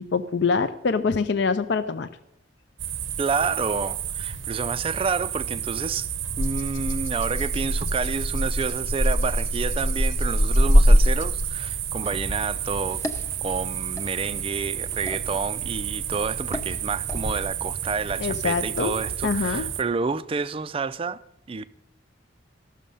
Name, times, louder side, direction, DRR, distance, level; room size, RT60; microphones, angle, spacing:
voice 1, 0.0-2.1 18.2-18.9 19.2-19.7, left 5 dB, 60° left, 0.5 m, -24 dB
sound 1, 2.8-19.8, right 9 dB, 70° right, 0.7 m, -31 dB
voice 2, 3.2-6.1 6.4-13.0 13.4-21.2 21.5-21.6, right 4 dB, 25° right, 0.3 m, -29 dB
Rattle (instrument), 6.4-11.7, equal, 85° left, 1.0 m, -22 dB
sound 2, 12.0-17.5, left 1 dB, 15° left, 0.6 m, -38 dB
14.5 x 6.3 x 5.5 m
head